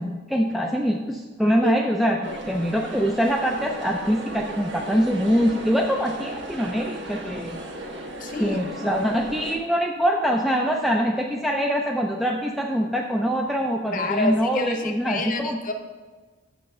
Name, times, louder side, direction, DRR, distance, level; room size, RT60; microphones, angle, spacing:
voice 1, 0.0-2.2 2.5-7.6 8.4-15.6, equal, ahead, 0 dB, 0.3 m, -24 dB
voice 2, 2.0-2.4 8.2-8.6 13.9-15.7, left 2 dB, 40° left, 5 dB, 0.7 m, -28 dB
sound 1, 2.2-9.6, right 1 dB, 60° right, 1.3 m, -36 dB
6.9 x 5.3 x 6.5 m, 1.3 s
head